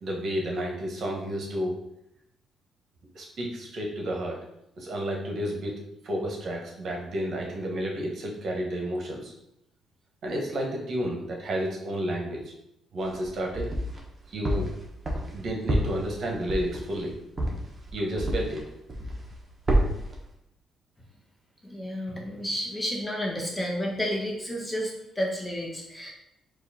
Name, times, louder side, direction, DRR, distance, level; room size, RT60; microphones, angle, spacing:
voice 1, 0.0-1.7 3.1-4.4 4.8-5.7 6.0-9.3 10.2-12.4 12.9-13.7 14.3-14.7 15.3-17.2 17.9-18.6, equal, 60° right, 0 dB, 1.2 m, -31 dB
sound 1, 13.0-14.0 14.5-18.6 18.9-19.4 19.7-20.2, right 1 dB, 25° right, 1.1 m, -28 dB
voice 2, 21.6-26.1, equal, 10° left, -1 dB, 1.1 m, -31 dB
4.7 x 2.6 x 4.2 m, 0.81 s
cardioid pair, 90°, 0 cm